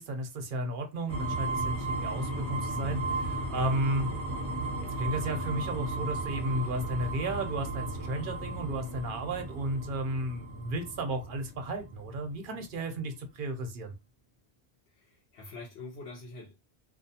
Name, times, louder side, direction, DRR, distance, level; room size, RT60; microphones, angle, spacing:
voice 1, 0.0-4.1 5.0-13.9, right 1 dB, 60° right, 0.7 m, -33 dB
sound 1, 1.1-12.9, right 2 dB, 15° right, 0.8 m, -35 dB
voice 2, 14.9-16.6, left 3 dB, 85° left, 1.0 m, -45 dB
2.4 x 2.3 x 2.7 m
omnidirectional pair, 1.1 m